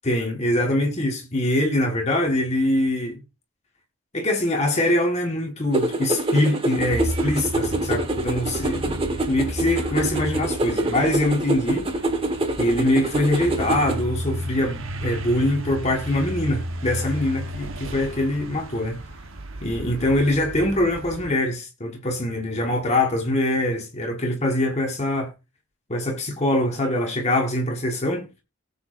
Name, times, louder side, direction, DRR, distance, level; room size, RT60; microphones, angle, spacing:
voice 1, 0.0-3.2 4.1-11.9 12.6-19.0 19.6-25.3 25.9-28.3, left 1 dB, 30° left, 1.4 m, -23 dB
sound 1, 5.7-14.0, right 2 dB, 25° right, 1.4 m, -26 dB
sound 2, 6.8-21.3, right 1 dB, 65° right, 1.2 m, -33 dB
18.5 x 7.1 x 2.5 m
head